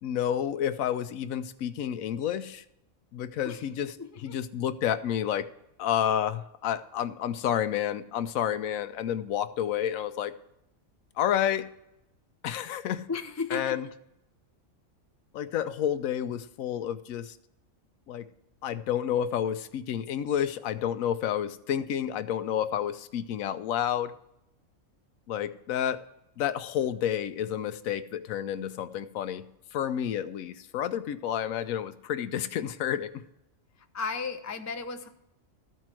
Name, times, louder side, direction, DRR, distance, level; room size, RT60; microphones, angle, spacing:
voice 1, 0.0-2.6 3.1-5.5 5.8-10.3 11.2-11.7 12.4-13.0 13.5-13.9 15.3-17.4 18.1-18.3 18.6-24.1 25.3-26.0 26.4-29.4 29.7-33.2, left 10 dB, 80° left, 13 dB, 1.0 m, -30 dB
voice 2, 4.0-4.4 13.1-13.8 33.9-35.1, left 4 dB, 25° left, 7 dB, 0.3 m, -34 dB
13.5 x 4.6 x 7.5 m, 0.83 s
omnidirectional pair, 1.4 m